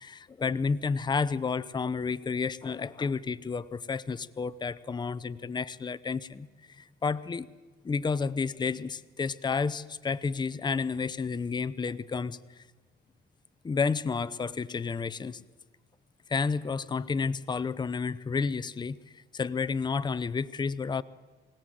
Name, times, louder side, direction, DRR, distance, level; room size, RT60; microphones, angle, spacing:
voice 1, 0.0-7.5 7.8-12.6 13.6-15.4 16.3-19.0 19.3-21.0, left 5 dB, 20° left, 17 dB, 0.6 m, -31 dB
24.0 x 17.0 x 7.7 m, 1.3 s
cardioid pair, 90°, 20 cm